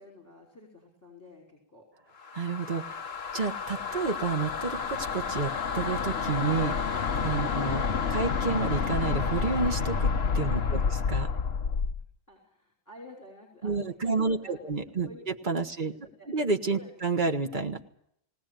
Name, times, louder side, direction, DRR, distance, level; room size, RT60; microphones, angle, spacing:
voice 1, 0.0-1.9 3.7-4.0 10.4-10.9 12.3-13.7 14.0-15.2 15.9-16.3 16.8-16.9, left 2 dB, 10° left, -2 dB, 5.0 m, -50 dB
sound 1, 2.2-12.0, left 5 dB, 40° left, 1.1 m, -29 dB
voice 2, 2.3-7.8 8.1-11.3 13.6-15.9 16.3-17.8, right 4 dB, 30° right, 5 dB, 1.1 m, -30 dB
19.0 x 18.5 x 9.2 m, 0.75 s
omnidirectional pair, 2.2 m